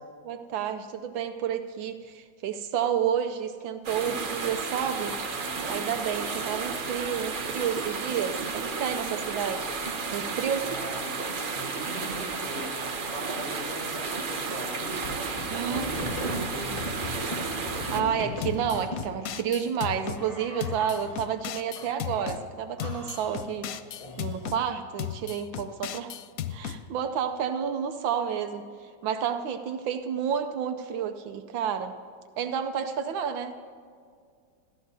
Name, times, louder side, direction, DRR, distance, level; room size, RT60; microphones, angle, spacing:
voice 1, 0.2-5.2 5.7-9.7 10.1-10.7 15.5-16.4 17.9-23.7 24.2-26.1 26.5-32.0 32.4-33.5, right 8 dB, 80° right, 7 dB, 1.4 m, -30 dB
sound 1, 3.8-18.0, right 4 dB, 50° right, 0.6 m, -32 dB
voice 2, 10.6-11.1 11.5-16.8 17.1-17.6, right 1 dB, 5° left, -4 dB, 3.0 m, -41 dB
sound 2, 14.7-19.2 20.0-21.3 21.8-22.3 22.8-24.6, left 2 dB, 20° left, 1.2 m, -39 dB
sound 3, 18.4-20.2 20.6-22.4 22.8-24.6 25.0-26.8, left 9 dB, 80° left, 0.7 m, -35 dB
27.0 x 13.5 x 2.7 m, 2.2 s
omnidirectional pair, 2.1 m